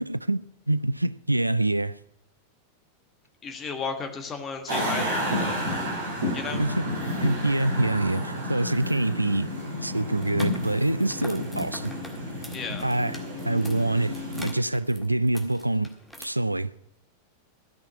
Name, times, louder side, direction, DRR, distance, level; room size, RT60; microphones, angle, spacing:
voice 1, 0.0-2.0 6.6-9.5 9.8-11.9 12.8-14.2 14.4-15.9 16.2-16.7, right 2 dB, 85° right, 0.3 m, -26 dB
voice 2, 3.4-5.6 6.3-6.6 12.5-12.9, left 5 dB, 25° left, 1.4 m, -34 dB
sound 1, 4.7-14.4, equal, 70° right, 3.6 m, -31 dB
sound 2, 10.1-16.2, equal, ahead, 1.7 m, -45 dB
13.0 x 5.8 x 9.1 m
figure-of-eight pair, 90°, 0 cm